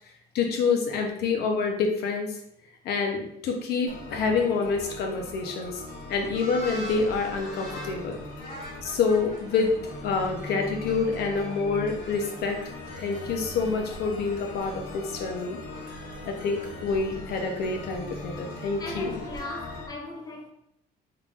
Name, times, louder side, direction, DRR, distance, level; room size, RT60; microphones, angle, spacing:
voice 1, 0.3-2.4 2.8-5.8 6.1-8.2 8.8-9.7 10.0-12.6 13.0-15.6 16.3-19.2, left 4 dB, 70° left, 3 dB, 0.7 m, -27 dB
sound 1, 3.9-19.9, left 2 dB, 55° left, 1.1 m, -41 dB
sound 2, 6.3-19.4, left 1 dB, 90° left, 1.4 m, -44 dB
voice 2, 18.8-20.5, left 2 dB, 25° left, 0 dB, 0.8 m, -38 dB
3.7 x 3.4 x 2.5 m, 0.75 s
cardioid pair, 110°, 17 cm